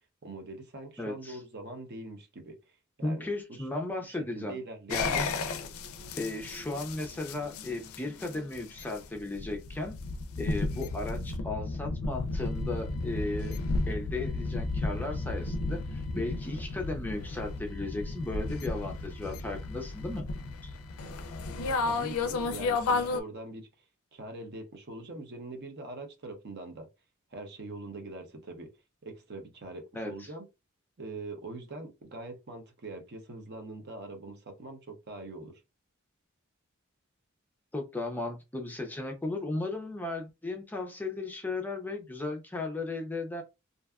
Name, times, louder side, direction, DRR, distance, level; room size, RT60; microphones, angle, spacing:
voice 1, 0.2-2.6 3.0-3.3 3.6-3.7 4.1-5.2 21.8-23.7 24.1-26.9 27.3-28.7 29.0-30.4 31.0-35.6, right 2 dB, 50° right, 0.7 m, -43 dB
voice 2, 1.0-1.4 3.0-4.6 4.9-5.3 6.2-10.0 10.4-13.6 13.9-20.3 20.6-20.8 29.9-30.3 37.7-43.4, left 2 dB, 10° left, 0.4 m, -35 dB
sound 1, 4.9-23.2, left 3 dB, 90° left, 0.4 m, -33 dB
2.6 x 2.2 x 2.3 m
head